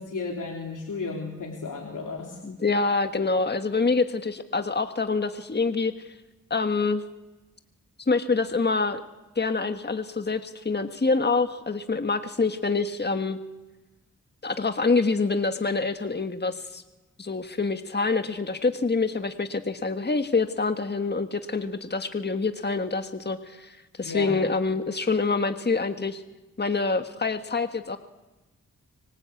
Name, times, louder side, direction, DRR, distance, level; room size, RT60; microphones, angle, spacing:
voice 1, 0.0-2.4 24.1-24.3, left 4 dB, 85° left, 0 dB, 3.4 m, -33 dB
voice 2, 2.4-6.1 6.5-7.0 8.1-9.0 9.3-13.4 14.4-16.8 17.2-26.2 26.6-28.0, left 4 dB, 35° left, 8 dB, 1.5 m, -26 dB
25.0 x 25.0 x 8.5 m, 1.1 s
cardioid pair, 60°, 30 cm